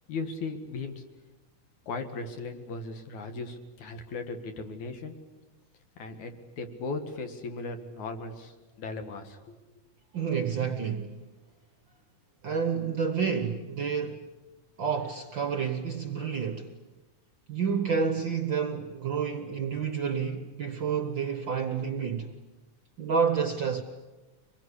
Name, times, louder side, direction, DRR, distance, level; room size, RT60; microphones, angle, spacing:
voice 1, 0.1-1.0 1.9-5.1 6.0-9.5, left 3 dB, 65° left, 3.3 m, -37 dB
voice 2, 10.1-11.2 12.4-14.3 14.8-16.8 17.5-22.3 23.0-23.8, right 6 dB, 55° right, 1.4 m, -29 dB
25.0 x 21.5 x 10.0 m
omnidirectional pair, 3.6 m